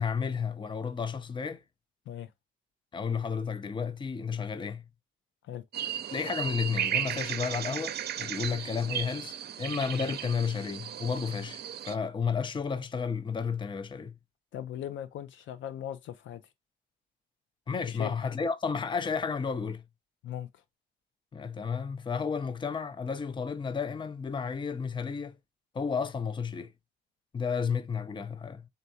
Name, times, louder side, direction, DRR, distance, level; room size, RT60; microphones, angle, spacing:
voice 1, 0.0-1.6 2.9-4.8 6.1-14.2 17.7-19.8 21.3-25.4 25.7-26.7 27.3-28.7, left 6 dB, 25° left, 0.5 m, -32 dB
sound 1, 5.7-11.9, right 9 dB, 55° right, 0.5 m, -35 dB
voice 2, 14.5-16.4 17.9-18.1 20.2-20.5, left 10 dB, 75° left, 0.6 m, -38 dB
3.9 x 3.4 x 2.7 m
cardioid pair, 90°, 20 cm